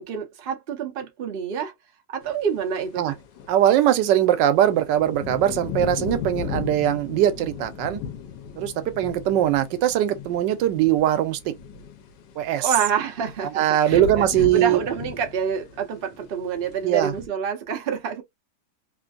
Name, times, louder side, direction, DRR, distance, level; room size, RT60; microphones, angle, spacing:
voice 1, 0.0-1.7 2.1-3.1 12.6-14.3 14.5-18.2, right 7 dB, 50° right, 0.7 m, -27 dB
sound 1, 2.2-2.3 2.6-3.6 4.2-12.7 13.1-17.3, left 6 dB, 80° left, 1.3 m, -36 dB
voice 2, 3.5-8.0 8.6-11.6 12.4-12.7 13.5-14.8 16.8-17.1, right 11 dB, 90° right, 1.3 m, -21 dB
3.3 x 2.5 x 2.4 m
omnidirectional pair, 1.9 m